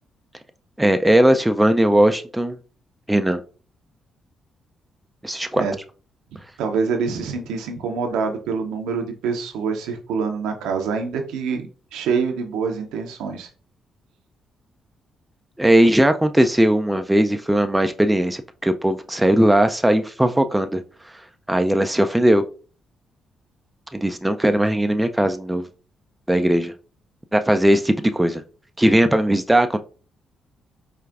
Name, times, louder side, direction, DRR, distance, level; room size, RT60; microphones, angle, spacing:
voice 1, 0.8-2.6 3.1-3.4 5.2-5.7 15.6-20.8 21.5-22.4 23.9-25.7 26.3-26.7 27.3-28.4 28.8-29.8, right 1 dB, 10° right, 0.4 m, -18 dB
voice 2, 6.6-13.5, right 5 dB, 75° right, 0.6 m, -25 dB
4.5 x 2.4 x 2.4 m
hypercardioid pair, 45°, 0 cm